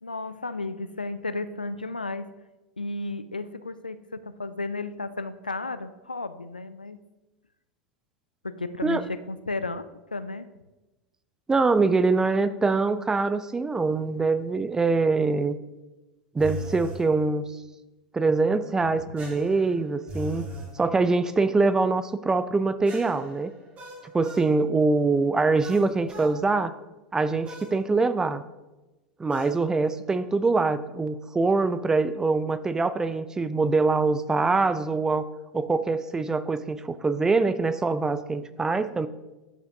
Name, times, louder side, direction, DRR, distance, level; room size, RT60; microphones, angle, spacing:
voice 1, 0.0-2.3 2.8-7.0 8.4-10.5 18.8-19.3, left 3 dB, 85° left, 12 dB, 0.3 m, -34 dB
voice 2, 11.5-15.6 16.3-17.4 18.1-20.5 20.8-23.5 24.1-26.7 27.1-28.4 29.2-35.3 35.5-39.1, right 3 dB, 15° right, 14 dB, 0.4 m, -24 dB
sound 1, 16.4-17.0 19.2-20.7 22.9-24.5 25.6-26.4 27.5-27.8 29.3-29.6, left 1 dB, 30° right, 1.8 m, -39 dB
11.5 x 5.7 x 2.6 m, 1.1 s
figure-of-eight pair, 85°, 5 cm